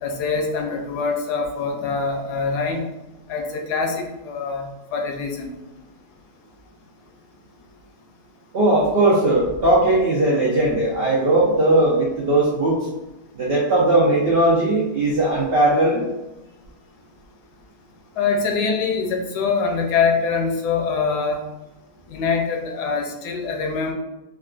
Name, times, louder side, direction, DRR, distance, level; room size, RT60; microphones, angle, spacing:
voice 1, 0.0-2.8 3.3-5.5 18.2-21.4 22.1-23.9, left 5 dB, 80° left, 2 dB, 1.1 m, -24 dB
voice 2, 8.5-12.8 13.3-16.0, right 1 dB, 85° right, -4 dB, 0.5 m, -18 dB
3.6 x 2.4 x 2.3 m, 0.99 s
omnidirectional pair, 1.7 m